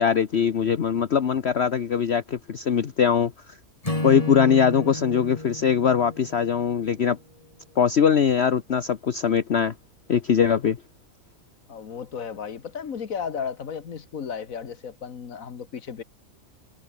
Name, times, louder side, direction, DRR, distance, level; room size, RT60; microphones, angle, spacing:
voice 1, 0.0-3.6 4.0-7.2 7.8-9.7 10.1-10.8, left 7 dB, 50° left, 1.2 m, -21 dB
Acoustic guitar / Strum, 3.8-7.2, left 2 dB, 25° left, 3.0 m, -32 dB
voice 2, 11.7-16.0, left 7 dB, 70° left, 1.9 m, -34 dB
omnidirectional pair, 1.5 m